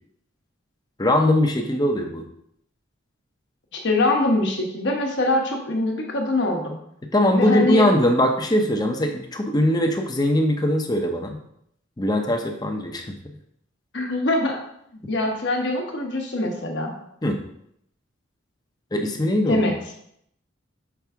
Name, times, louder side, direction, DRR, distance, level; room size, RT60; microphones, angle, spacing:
voice 1, 1.0-2.2 7.1-11.4 12.0-13.1 17.2-17.4 18.9-19.7, left 1 dB, 20° left, 3 dB, 0.6 m, -21 dB
voice 2, 3.7-6.8 7.3-7.8 13.9-14.6 14.9-16.9 19.5-19.7, left 2 dB, 60° left, 1 dB, 1.1 m, -23 dB
6.0 x 4.6 x 3.5 m, 0.72 s
head